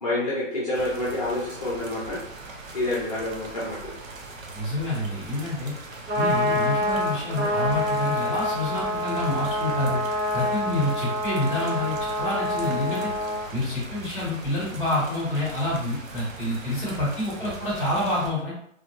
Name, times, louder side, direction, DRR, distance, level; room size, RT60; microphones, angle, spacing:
voice 1, 0.0-2.2 2.7-3.9, left 1 dB, 30° left, -8 dB, 0.6 m, -28 dB
sound 1, 0.7-18.3, right 3 dB, 85° right, 0.8 m, -41 dB
voice 2, 4.5-5.7 6.1-10.0 10.3-13.1 13.5-18.5, left 1 dB, 10° right, -10 dB, 1.0 m, -27 dB
Trumpet, 5.9-13.5, equal, 70° right, 1.3 m, -27 dB
3.4 x 2.3 x 2.8 m, 0.70 s
hypercardioid pair, 180°, 39 cm